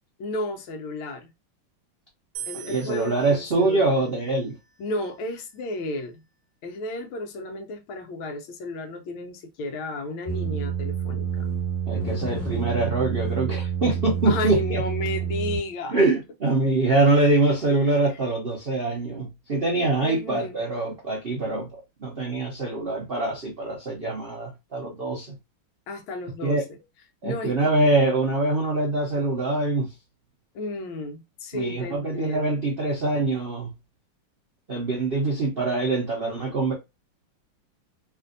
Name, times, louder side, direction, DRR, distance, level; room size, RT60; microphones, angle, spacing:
voice 1, 0.2-1.3 2.5-3.9 4.8-6.2 6.6-11.5 14.2-16.0 20.0-20.6 25.9-26.6 27.2-27.5 30.5-32.6, left 2 dB, 75° left, 1.4 m, -32 dB
sound 1, 2.3-5.6, right 10 dB, 55° right, 1.1 m, -43 dB
voice 2, 2.7-4.5 11.9-14.8 15.9-25.3 26.4-26.6 27.2-29.9 31.5-33.7 34.7-36.7, right 2 dB, 75° right, 0.5 m, -24 dB
sound 2, 10.3-15.6, right 7 dB, 30° left, 1.8 m, -28 dB
3.4 x 2.6 x 2.5 m
omnidirectional pair, 2.3 m